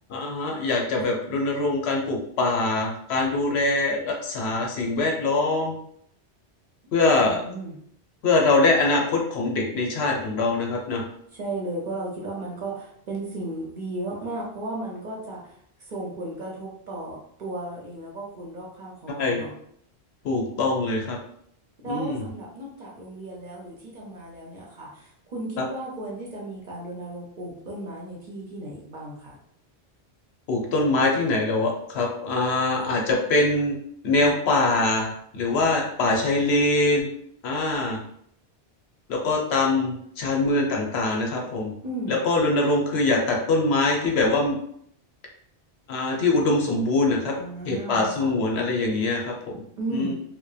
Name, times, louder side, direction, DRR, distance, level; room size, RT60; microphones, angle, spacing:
voice 1, 0.1-5.8 6.9-7.4 8.2-11.0 19.2-19.4 20.2-21.2 21.8-22.2 30.5-33.8 34.0-37.1 37.4-38.0 39.1-41.7 42.1-44.6 45.9-47.3 47.7-49.6 49.9-50.1, left 2 dB, 75° left, 0 dB, 0.9 m, -23 dB
voice 2, 7.2-7.8 11.3-15.5 15.8-19.5 21.8-29.4 32.8-32.9 41.8-42.2 47.4-48.3 49.8-50.1, right 1 dB, 55° right, -3 dB, 0.6 m, -35 dB
2.8 x 2.0 x 2.3 m, 0.69 s
omnidirectional pair, 1.1 m